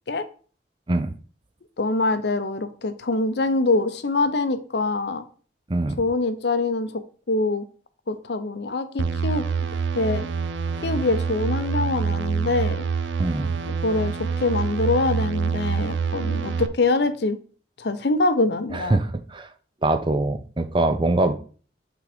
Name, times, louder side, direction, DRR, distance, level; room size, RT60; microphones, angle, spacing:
voice 1, 1.8-5.2 6.0-7.0 7.3-7.7 8.1-9.4 9.9-10.3 10.8-12.8 13.8-17.4 17.8-19.0, left 3 dB, 60° left, 11 dB, 0.6 m, -24 dB
voice 2, 5.7-6.0 13.2-13.5 18.7-19.5 19.8-21.3, right 2 dB, 25° right, 10 dB, 0.5 m, -23 dB
sound 1, 9.0-16.7, right 5 dB, 80° right, 0.6 m, -26 dB
5.9 x 3.8 x 5.1 m, 0.41 s
head